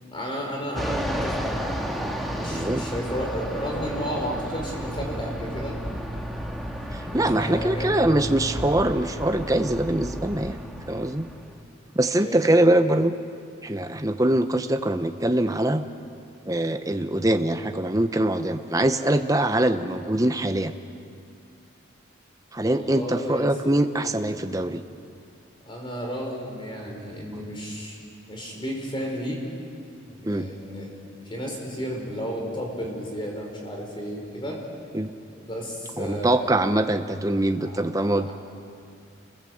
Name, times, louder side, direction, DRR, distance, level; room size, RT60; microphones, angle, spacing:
voice 1, 0.0-5.8 7.3-8.1 10.3-10.6 12.2-12.6 22.7-24.1 25.7-28.0 28.3-29.4 30.1-30.9 31.2-34.6 35.3-36.8 37.6-38.3, equal, 25° left, 0 dB, 4.9 m, -33 dB
Fixed-wing aircraft airplane, 0.8-11.6, equal, ahead, 1.7 m, -32 dB
voice 2, 2.4-2.9 6.9-10.6 10.9-11.3 12.0-13.1 13.6-15.8 16.5-20.7 22.5-24.8 30.2-30.5 34.9-35.1 36.0-38.3, right 1 dB, 15° right, 8 dB, 0.8 m, -23 dB
28.0 x 21.0 x 7.9 m, 2.4 s
head